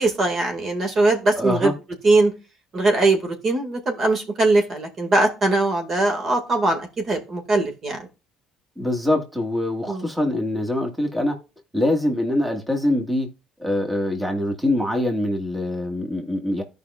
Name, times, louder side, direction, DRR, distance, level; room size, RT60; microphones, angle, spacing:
voice 1, 0.0-1.7 2.0-2.3 2.7-8.1 9.9-10.1, right 2 dB, 45° right, 2.0 m, -21 dB
voice 2, 1.4-1.7 8.8-11.3 11.7-13.3 13.6-16.6, left 1 dB, 10° right, 1.7 m, -24 dB
13.5 x 5.3 x 2.4 m
supercardioid pair, 95°, 0 cm